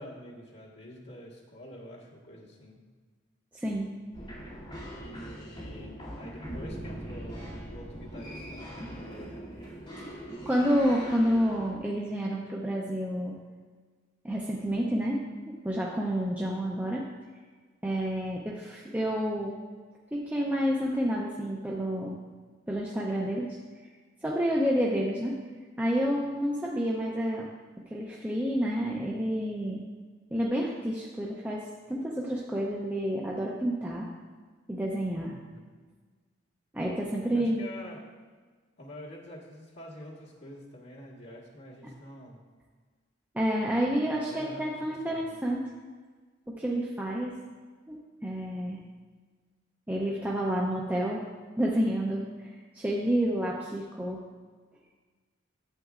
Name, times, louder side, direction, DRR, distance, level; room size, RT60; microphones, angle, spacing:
voice 1, 0.0-2.8 5.0-9.5 35.1-35.6 37.3-38.0 38.8-42.4 43.8-45.4, left 1 dB, 60° left, -5 dB, 1.5 m, -47 dB
voice 2, 3.5-3.9 10.0-10.1 10.5-13.4 14.2-17.1 17.8-19.6 20.1-22.2 22.7-23.6 24.2-25.4 25.8-27.4 27.9-29.8 30.3-34.1 34.7-35.3 36.7-37.6 43.3-45.7 46.6-47.3 47.9-48.0 48.2-48.8 49.9-51.2 51.6-52.2 52.7-54.2, equal, 10° right, -3 dB, 0.5 m, -29 dB
sound 1, 4.1-11.7, equal, 30° left, 2.7 m, -41 dB
11.0 x 8.3 x 2.4 m, 1.5 s
head